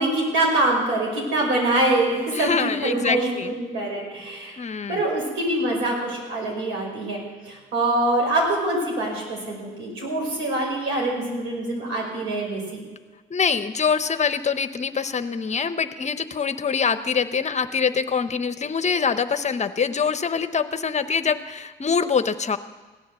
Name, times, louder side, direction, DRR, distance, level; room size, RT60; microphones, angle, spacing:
voice 1, 0.0-4.5 4.9-7.2 7.5-12.9, right 2 dB, 85° right, -1 dB, 5.7 m, -24 dB
voice 2, 2.3-3.5 4.6-5.0 13.3-22.6, left 6 dB, 35° left, 11 dB, 0.8 m, -24 dB
16.5 x 10.0 x 7.7 m, 1.3 s
cardioid pair, 90°, 20 cm